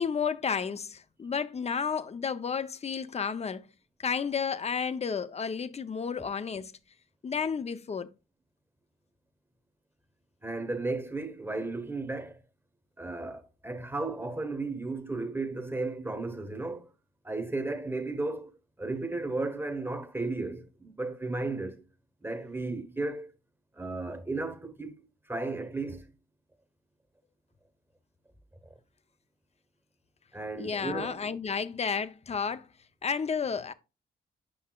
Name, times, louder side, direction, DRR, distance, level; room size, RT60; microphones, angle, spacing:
voice 1, 0.0-3.6 4.0-6.7 7.2-8.1 30.6-32.7 33.0-33.7, left 6 dB, 30° left, 0.6 m, -32 dB
voice 2, 10.4-12.4 13.0-16.9 17.2-18.5 18.8-21.8 22.2-23.3 23.8-26.1 30.3-31.2, right 3 dB, 10° right, 1.0 m, -34 dB
7.6 x 5.5 x 2.3 m
supercardioid pair, 65°, 21 cm